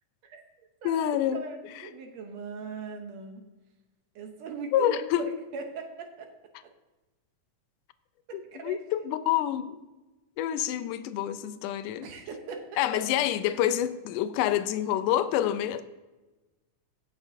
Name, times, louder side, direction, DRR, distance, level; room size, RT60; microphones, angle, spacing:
voice 1, 0.2-3.4 4.2-5.3 5.5-6.3 8.3-8.8 12.0-13.2, right 5 dB, 65° right, 1.9 m, -40 dB
voice 2, 0.8-1.4 4.7-5.3 8.6-9.8 10.4-12.1 12.8-15.8, left 11 dB, 80° left, 2.1 m, -27 dB
17.5 x 6.7 x 2.7 m
omnidirectional pair, 3.7 m